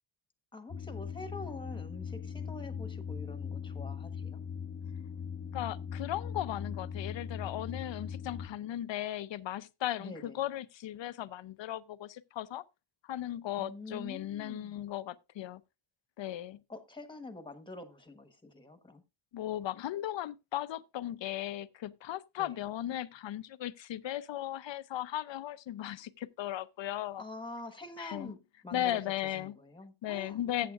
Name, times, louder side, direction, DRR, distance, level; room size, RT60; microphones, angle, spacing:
voice 1, 0.5-4.4 10.0-10.4 13.6-14.8 16.7-19.0 22.4-22.6 27.2-30.7, left 2 dB, 10° left, 1.2 m, -46 dB
sound 1, 0.7-8.5, left 7 dB, 25° left, 0.9 m, -40 dB
voice 2, 5.5-12.6 13.0-15.6 16.2-16.6 19.3-27.2 28.0-28.3 28.7-29.6 30.0-30.7, left 12 dB, 65° left, 0.6 m, -37 dB
14.5 x 8.1 x 2.4 m
wide cardioid pair, 135°, 49 cm